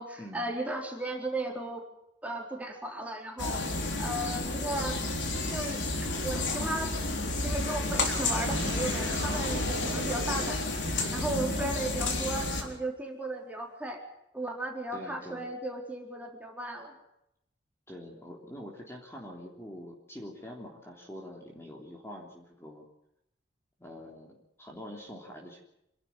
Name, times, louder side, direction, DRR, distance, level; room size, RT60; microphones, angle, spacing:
voice 1, 0.0-1.8 2.2-5.0 5.5-6.9 7.4-10.6 11.1-14.0 14.3-16.9, right 1 dB, 10° right, 1 dB, 4.0 m, -35 dB
sound 1, 3.4-12.6, left 2 dB, 80° left, 4.0 m, -31 dB
sound 2, 7.9-11.8, right 3 dB, 85° right, 1.3 m, -41 dB
voice 2, 14.9-15.5 17.9-22.9 23.8-25.6, equal, 15° left, -1 dB, 3.3 m, -45 dB
27.0 x 12.0 x 10.0 m, 0.81 s
head